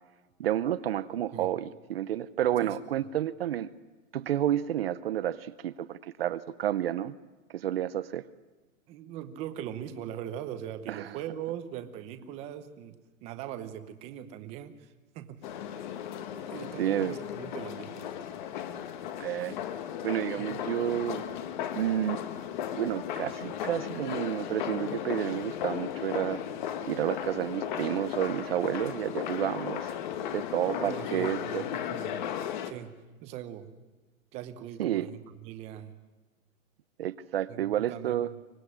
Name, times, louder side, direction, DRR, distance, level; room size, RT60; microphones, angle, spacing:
voice 1, 0.4-3.7 4.1-7.1 7.5-8.2 10.9-11.2 16.8-17.1 19.2-19.6 20.0-21.2 21.8-22.2 22.8-26.4 26.9-29.9 30.3-31.6 34.8-35.1 37.0-38.3, right 11 dB, 45° right, 14 dB, 0.7 m, -30 dB
voice 2, 8.9-15.4 16.5-18.1 20.4-20.6 30.6-32.2 32.6-32.9 33.2-33.7 34.3-35.9 37.5-38.4, right 10 dB, 15° right, 9 dB, 0.9 m, -41 dB
sound 1, 15.4-32.7, left 9 dB, 35° left, 1.3 m, -36 dB
24.5 x 18.0 x 9.9 m, 1.2 s
hypercardioid pair, 165°, 42 cm